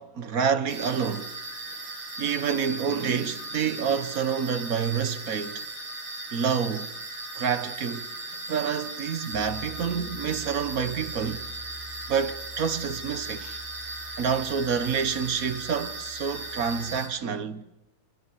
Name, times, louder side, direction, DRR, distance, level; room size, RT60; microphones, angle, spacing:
voice 1, 0.0-1.4 2.2-5.6 6.3-6.9 7.3-8.1 8.5-11.4 12.1-13.6 14.2-17.7, right 7 dB, 50° right, 1.4 m, -28 dB
sound 1, 0.7-17.1, right 2 dB, 85° right, 7.9 m, -38 dB
sound 2, 9.3-17.0, right 3 dB, 20° right, 4.1 m, -46 dB
27.5 x 24.0 x 8.5 m
omnidirectional pair, 2.3 m